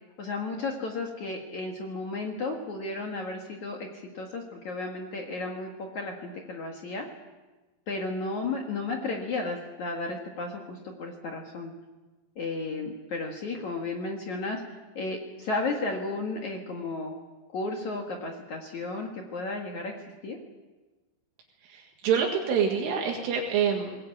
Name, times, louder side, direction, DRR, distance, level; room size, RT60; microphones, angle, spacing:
voice 1, 0.2-7.1 7.9-11.7 12.4-14.6 15.0-17.2 17.5-19.9 20.2-20.4, left 3 dB, 55° left, 1 dB, 2.1 m, -33 dB
voice 2, 21.6-24.0, right 7 dB, 75° right, 1 dB, 4.3 m, -26 dB
21.5 x 19.0 x 8.6 m, 1.2 s
omnidirectional pair, 5.9 m